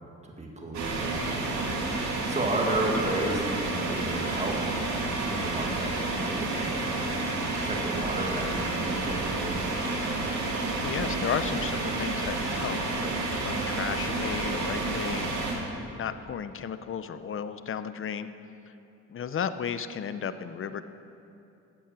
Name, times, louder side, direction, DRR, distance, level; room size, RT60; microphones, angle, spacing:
voice 1, 0.2-4.6 5.2-6.7 7.5-9.7, right 2 dB, 25° right, -1 dB, 2.1 m, -33 dB
sound 1, 0.7-15.5, right 2 dB, 70° right, 2.7 m, -30 dB
voice 2, 10.8-13.1 13.4-18.3 19.1-20.8, left 7 dB, 45° left, 12 dB, 0.7 m, -34 dB
13.5 x 8.5 x 7.7 m, 2.8 s
cardioid pair, 90°, 30 cm